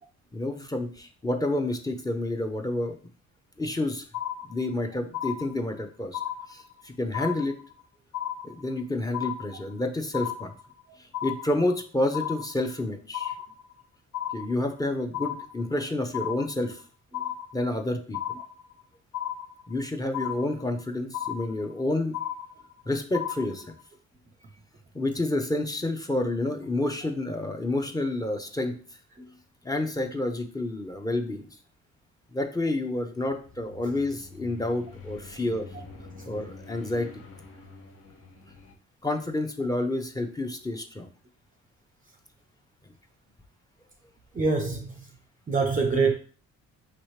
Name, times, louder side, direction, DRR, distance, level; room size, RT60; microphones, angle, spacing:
voice 1, 0.3-3.0 3.6-4.0 4.5-6.2 6.5-7.6 8.4-10.5 11.2-13.3 14.3-16.8 17.5-18.2 19.7-22.2 22.9-23.6 24.9-28.8 29.6-31.5 32.3-35.7 36.3-37.1 39.0-41.1, left 2 dB, 10° left, 0.7 m, -29 dB
sound 1, 4.1-4.8 5.1-5.8 6.1-6.8 7.1-7.8 8.1-8.8 9.1-9.8 10.1-10.8 11.1-11.8 12.1-12.8 13.1-13.8 14.1-14.8 15.1-15.8 16.1-16.8 17.1-17.8 18.1-18.8 19.1-19.8 20.1-20.8 21.1-21.8 22.1-22.8 23.1-23.8, left 10 dB, 80° left, 0.7 m, -34 dB
sound 2, 33.1-38.7, left 3 dB, 50° left, 1.1 m, -46 dB
voice 2, 44.3-45.1 45.5-46.1, right 4 dB, 25° right, 0.6 m, -25 dB
4.9 x 3.0 x 3.2 m
cardioid pair, 90°, 30 cm